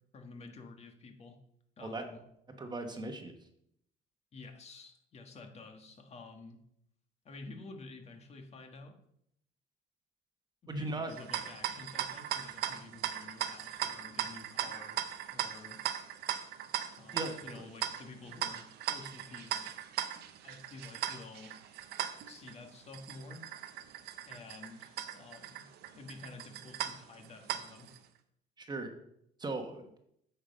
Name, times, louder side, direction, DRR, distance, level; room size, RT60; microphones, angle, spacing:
voice 1, 0.1-1.4 1.8-2.2 4.3-6.6 7.2-8.9 10.6-15.0 15.3-15.8 17.0-19.7 20.4-21.7 22.3-23.5 24.3-25.7 25.9-27.9, left 3 dB, 40° left, 4 dB, 1.5 m, -50 dB
voice 2, 2.5-3.3 10.7-11.2 17.1-17.7 28.6-28.9 29.4-29.9, right 2 dB, 25° right, 5 dB, 1.2 m, -38 dB
sound 1, 11.1-28.0, right 11 dB, 75° right, 0.8 m, -39 dB
8.7 x 5.7 x 5.4 m, 0.74 s
cardioid pair, 110°, 17 cm